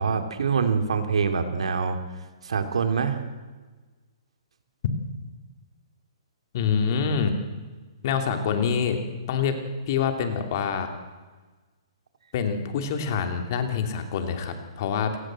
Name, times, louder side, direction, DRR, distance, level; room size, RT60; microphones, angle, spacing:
voice 1, 0.0-2.0 2.4-3.2, right 5 dB, 85° right, 7 dB, 3.3 m, -25 dB
voice 2, 6.5-7.4 8.0-9.0 9.3-9.6 9.9-10.9 12.3-15.2, left 6 dB, 35° left, 6 dB, 2.9 m, -26 dB
29.0 x 18.5 x 7.7 m, 1.3 s
hypercardioid pair, 170°, 3 cm